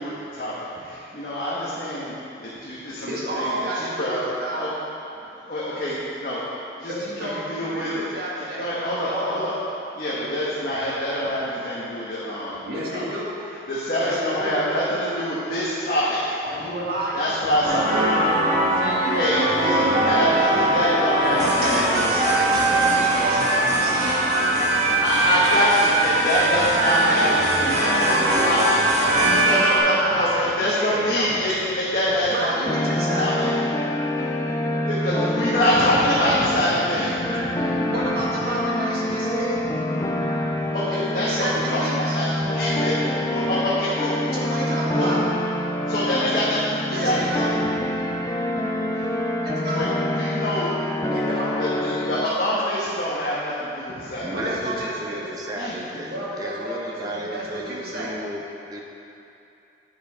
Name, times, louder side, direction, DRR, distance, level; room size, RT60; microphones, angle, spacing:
voice 1, 0.0-4.2 4.6-4.7 5.5-6.4 6.8-9.5 9.9-12.6 12.9-13.0 13.7-16.4 17.1-22.4 24.1-24.2 24.9-28.1 28.4-28.7 29.4-32.5 32.8-33.7 34.1-34.3 34.9-37.9 38.4-38.5 39.1-39.2 39.5-39.7 40.0-43.0 43.3-44.2 44.9-45.2 45.9-48.0 48.6-49.1 49.7-49.9 50.1-50.7 51.6-54.6 55.5-55.8, equal, 50° left, -8 dB, 1.2 m, -25 dB
voice 2, 3.1-4.6 6.9-8.7 9.0-9.4 12.7-13.3 14.0-14.6 16.4-17.3 21.6-24.3 27.7-31.3 32.3-33.6 37.3-37.4 37.9-39.6 40.2-40.4 40.9-42.2 44.3-45.2 46.9-47.5 49.4-49.8 51.1-51.6 54.3-55.2 55.9-58.1, right 1 dB, 55° right, -6 dB, 1.9 m, -30 dB
sound 1, 17.6-29.8, right 1 dB, 40° right, 1.7 m, -21 dB
sound 2, 32.7-52.3, left 1 dB, 20° left, 0.4 m, -26 dB
voice 3, 54.2-58.4 58.7-58.8, right 1 dB, 20° right, -1 dB, 0.8 m, -34 dB
9.3 x 5.6 x 4.9 m, 2.7 s
head